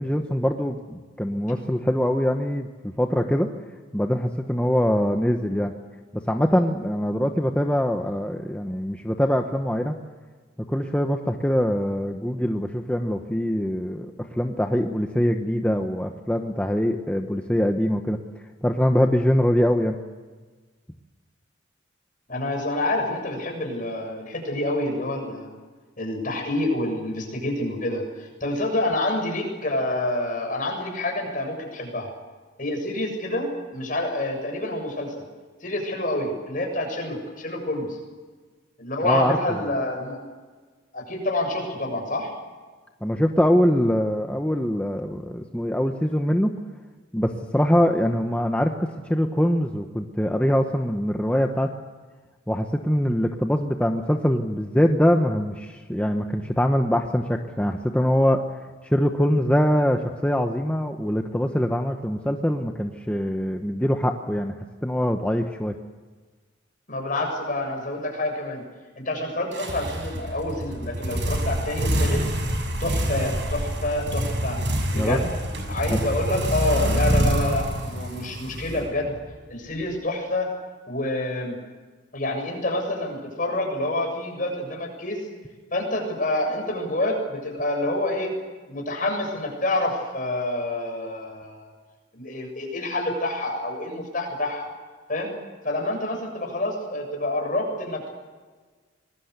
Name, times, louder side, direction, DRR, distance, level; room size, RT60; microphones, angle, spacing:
voice 1, 0.0-3.5 3.9-5.7 6.1-10.0 10.7-18.2 18.6-20.0 39.0-39.6 43.0-46.5 47.1-51.7 52.5-58.4 58.8-64.5 64.8-65.7 74.9-75.2 75.9-76.0, equal, 5° left, 4 dB, 1.1 m, -23 dB
voice 2, 22.3-25.5 26.0-32.1 32.6-35.2 35.6-38.0 38.8-40.2 40.9-42.3 66.9-68.6 69.0-72.2 72.8-74.6 74.9-75.3 75.7-79.1 79.5-80.5 80.9-81.6 82.1-85.2 85.7-88.3 88.7-91.7 92.1-94.7 95.1-95.3 95.6-98.1, left 1 dB, 45° left, 3 dB, 7.3 m, -27 dB
sound 1, 69.5-79.3, equal, 65° right, 6.5 m, -26 dB
25.5 x 20.5 x 8.2 m, 1.4 s
head